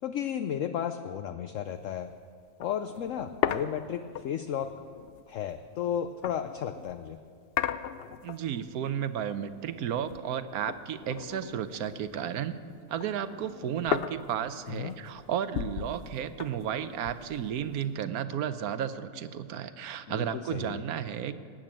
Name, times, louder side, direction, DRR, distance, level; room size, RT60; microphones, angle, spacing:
voice 1, 0.0-2.1 2.6-4.7 5.3-7.2 14.7-15.0 20.1-20.8, left 9 dB, 65° left, 8 dB, 0.9 m, -33 dB
sound 1, 1.7-1.9 2.2-2.3 2.6-7.0 7.5-8.7 9.0-10.4 10.7-12.4 12.7-17.9, left 9 dB, 85° left, 0.5 m, -37 dB
voice 2, 8.2-12.6 12.9-21.3, right 9 dB, 75° right, 12 dB, 1.2 m, -33 dB
18.5 x 8.9 x 7.5 m, 2.2 s
omnidirectional pair, 1.6 m